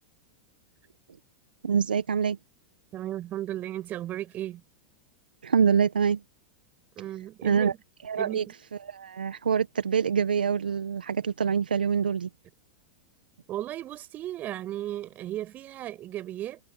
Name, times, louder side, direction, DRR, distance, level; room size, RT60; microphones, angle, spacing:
voice 1, 1.6-2.4 5.4-6.2 7.4-7.7 8.0-8.4 8.8-12.3, right 6 dB, 85° right, 1.6 m, -25 dB
voice 2, 2.9-4.6 7.0-7.8 8.2-8.5 13.5-16.6, right 13 dB, 35° right, 7.9 m, -35 dB
hypercardioid pair, 100°, 5 cm